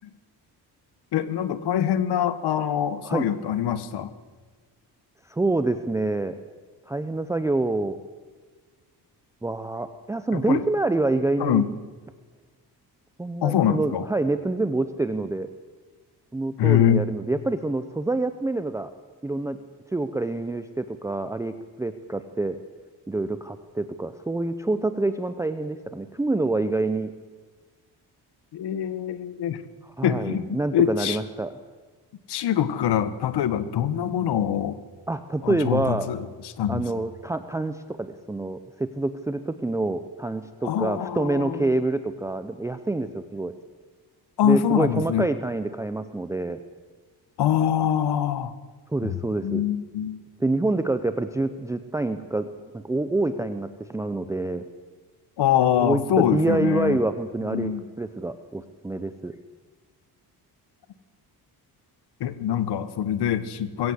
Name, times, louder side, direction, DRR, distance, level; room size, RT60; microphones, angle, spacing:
voice 1, 1.1-4.1 10.3-10.6 11.4-11.7 13.4-14.1 16.6-17.0 28.5-29.6 30.0-31.2 32.3-34.8 35.4-36.2 36.4-36.8 40.6-41.7 44.4-45.2 47.4-48.5 49.0-49.2 49.4-50.2 55.4-57.0 57.5-57.8 62.2-63.9, left 10 dB, 80° left, 13 dB, 1.5 m, -24 dB
voice 2, 5.3-6.3 6.9-8.0 9.4-11.6 13.2-15.5 16.3-18.9 19.2-19.6 19.9-22.6 23.1-27.1 30.0-31.5 35.1-36.1 36.7-43.5 44.4-46.6 48.9-49.6 50.4-54.6 55.8-57.7 58.0-59.4, right 2 dB, 10° right, 9 dB, 0.6 m, -26 dB
21.0 x 16.5 x 8.0 m, 1.4 s
cardioid pair, 160°, 40 cm